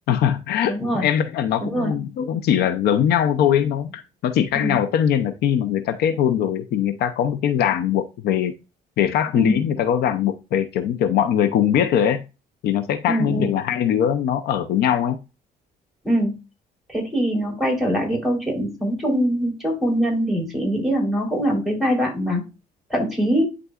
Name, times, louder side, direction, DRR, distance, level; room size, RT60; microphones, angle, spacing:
voice 1, 0.1-8.5 9.0-12.2 12.6-15.2, left 9 dB, 70° left, 0.6 m, -21 dB
voice 2, 0.7-1.1 1.6-1.9 4.5-4.8 9.3-9.6 13.1-13.5 16.0-16.4 16.9-22.4 22.9-23.4, equal, ahead, 3.7 m, -23 dB
11.0 x 3.9 x 2.4 m
cardioid pair, 110°, 17 cm